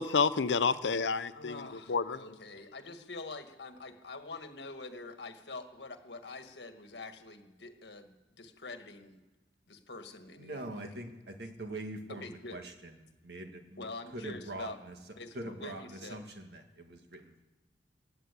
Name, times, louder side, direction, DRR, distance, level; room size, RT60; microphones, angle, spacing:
voice 1, 0.0-2.2, left 5 dB, 90° left, 0.7 m, -29 dB
voice 2, 1.3-9.2 9.7-10.8 12.2-12.6 13.8-14.8 15.2-16.2, left 3 dB, 70° left, 1.6 m, -45 dB
voice 3, 10.4-15.0 15.3-17.4, right 2 dB, 65° right, 1.8 m, -43 dB
17.0 x 9.2 x 8.3 m
head